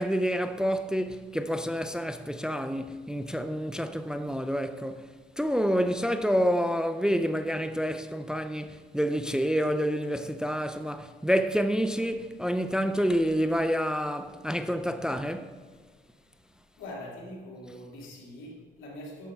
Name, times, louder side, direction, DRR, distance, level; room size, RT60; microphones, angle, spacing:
voice 1, 0.0-5.1 5.4-15.5, equal, 5° right, 0.4 m, -28 dB
voice 2, 16.8-19.3, left 1 dB, 85° left, 2.4 m, -43 dB
10.5 x 6.9 x 3.4 m
cardioid pair, 90°, 20 cm